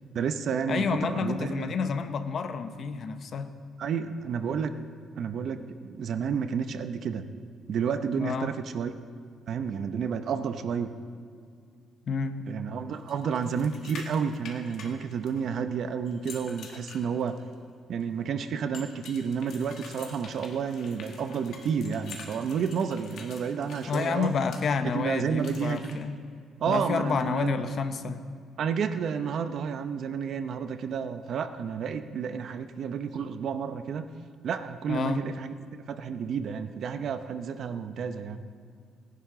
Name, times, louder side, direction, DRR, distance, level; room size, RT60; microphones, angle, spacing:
voice 1, 0.1-1.7 3.8-4.7 5.2-7.2 7.7-8.9 9.5-10.9 12.5-17.4 17.9-24.3 24.9-26.0 26.6-27.7 28.6-34.1 34.4-35.5 35.9-38.4, right 6 dB, 55° right, 9 dB, 0.7 m, -31 dB
voice 2, 0.7-3.5 8.2-8.5 12.1-12.4 23.9-26.2 26.7-28.2 34.9-35.2, left 5 dB, 45° left, 10 dB, 0.7 m, -29 dB
sound 1, 13.1-15.6 16.1-17.5 18.7-24.6 25.4-25.9, left 4 dB, 65° left, 1.8 m, -46 dB
19.5 x 11.0 x 3.8 m, 2.2 s
cardioid pair, 145°, 0 cm